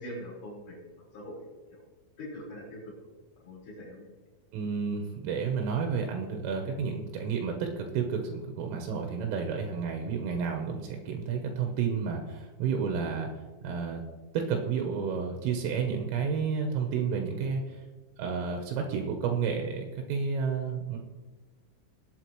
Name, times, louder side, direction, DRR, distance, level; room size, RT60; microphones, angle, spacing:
voice 1, 0.0-1.4 1.7-1.8 2.2-2.9 3.4-4.1, equal, 40° left, -5 dB, 5.4 m, -43 dB
voice 2, 4.5-13.3 13.6-14.0 14.3-17.8 18.2-21.0, right 6 dB, 80° right, 3 dB, 3.5 m, -31 dB
19.5 x 8.1 x 3.1 m, 1.2 s
omnidirectional pair, 5.8 m